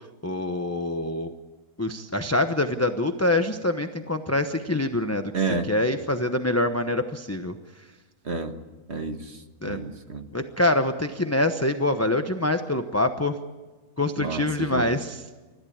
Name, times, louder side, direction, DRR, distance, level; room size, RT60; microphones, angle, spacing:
voice 1, 0.2-1.3 1.8-5.3 5.7-7.6 9.6-9.8 10.3-13.4 14.0-15.2, left 1 dB, 15° left, 6 dB, 0.7 m, -25 dB
voice 2, 5.3-5.7 8.2-8.6 8.9-10.3 14.2-14.9, right 4 dB, 45° right, 6 dB, 1.8 m, -30 dB
29.5 x 14.5 x 8.7 m, 1.3 s
omnidirectional pair, 1.6 m